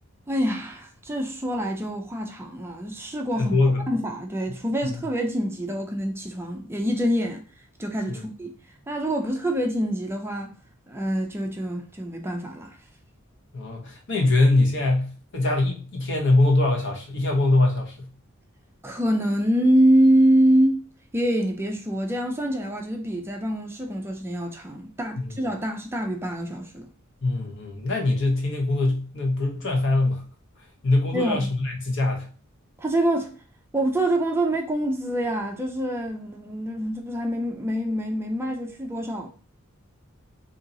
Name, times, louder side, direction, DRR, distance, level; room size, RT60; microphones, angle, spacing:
voice 1, 0.3-3.6 3.9-7.5 7.8-8.5 8.9-10.5 10.9-12.8 18.8-20.9 21.1-26.9 31.1-31.5 32.8-33.4 33.7-39.3, right 1 dB, 10° right, 0.4 m, -25 dB
voice 2, 3.4-3.9 4.8-5.0 8.1-8.2 13.5-18.1 25.2-25.4 27.2-30.2 30.8-32.3, left 2 dB, 60° left, 1.0 m, -23 dB
2.8 x 2.7 x 3.8 m
head